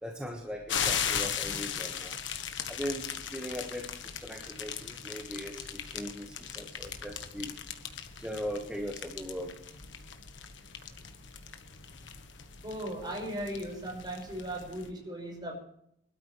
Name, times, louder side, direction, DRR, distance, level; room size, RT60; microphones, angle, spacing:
voice 1, 0.0-2.2 2.7-7.6 8.2-9.5, equal, 5° right, 1 dB, 1.5 m, -39 dB
sound 1, 0.7-14.9, left 8 dB, 80° left, 1.4 m, -38 dB
voice 2, 12.6-15.5, right 1 dB, 25° right, 0 dB, 5.6 m, -37 dB
24.0 x 13.0 x 3.3 m, 0.73 s
head